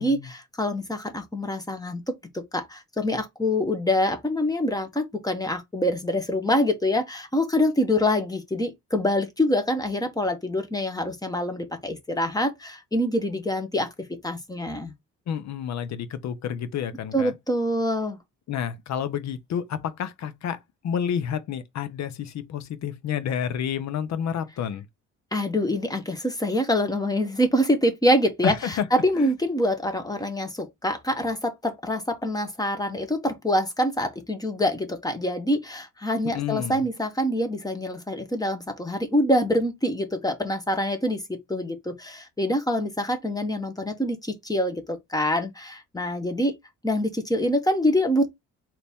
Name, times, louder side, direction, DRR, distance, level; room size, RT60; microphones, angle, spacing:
voice 1, 0.0-13.9 14.2-14.9 17.1-18.2 25.3-46.6 46.8-48.3, left 1 dB, 10° left, 1.2 m, -25 dB
voice 2, 15.3-17.3 18.5-20.6 20.8-24.8 28.4-28.9 29.2-29.3 36.2-36.8, left 8 dB, 65° left, 0.8 m, -30 dB
4.0 x 2.9 x 3.5 m
cardioid pair, 90°, 30 cm